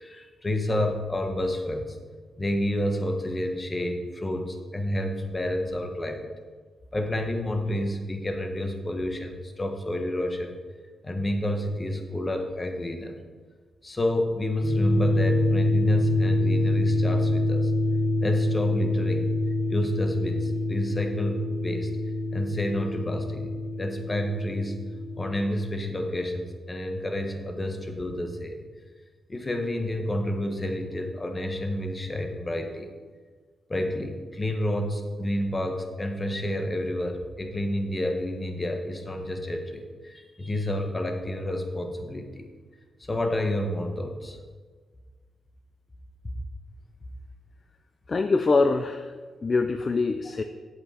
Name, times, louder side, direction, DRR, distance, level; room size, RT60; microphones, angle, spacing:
voice 1, 0.0-2.0 2.4-6.3 6.9-10.5 11.0-13.1 13.8-17.7 18.2-19.3 19.7-21.9 22.3-24.9 25.2-28.6 29.3-32.9 33.7-42.5 43.0-44.4, left 1 dB, 25° left, 5 dB, 1.4 m, -30 dB
sound 1, 14.6-25.5, left 1 dB, 5° left, 1.1 m, -25 dB
voice 2, 48.1-49.1 49.4-50.4, left 3 dB, 45° left, 8 dB, 0.5 m, -24 dB
8.1 x 7.9 x 4.8 m, 1.5 s
cardioid pair, 65°, 0 cm